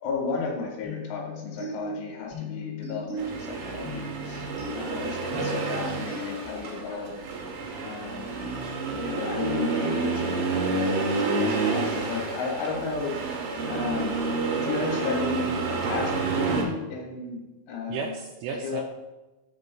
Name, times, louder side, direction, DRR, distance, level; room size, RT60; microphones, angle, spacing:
voice 1, 0.0-4.5 4.8-7.1 7.8-8.4 9.0-10.5 11.4-13.2 13.7-14.3 14.5-17.4 17.7-18.1 18.5-18.8, left 4 dB, 75° left, -1 dB, 3.6 m, -33 dB
sound 1, 0.8-6.8, left 1 dB, 45° left, 1.5 m, -37 dB
Accelerating revving vroom, 3.2-16.6, right 3 dB, 70° right, 2.7 m, -29 dB
voice 2, 5.4-5.7 17.9-18.8, right 5 dB, 85° right, 3 dB, 2.8 m, -34 dB
10.5 x 6.2 x 2.2 m, 1.0 s
omnidirectional pair, 5.9 m